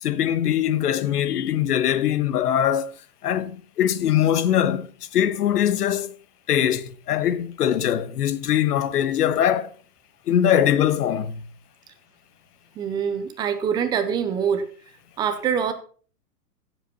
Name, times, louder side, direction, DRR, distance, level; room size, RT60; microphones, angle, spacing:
voice 1, 0.0-2.9 3.2-4.9 5.1-6.1 6.5-9.7 10.3-11.4, left 10 dB, 65° left, 1.4 m, -22 dB
voice 2, 12.8-14.7 15.2-15.7, right 7 dB, 10° right, 0.5 m, -24 dB
15.0 x 7.8 x 4.3 m
hypercardioid pair, 140°, 49 cm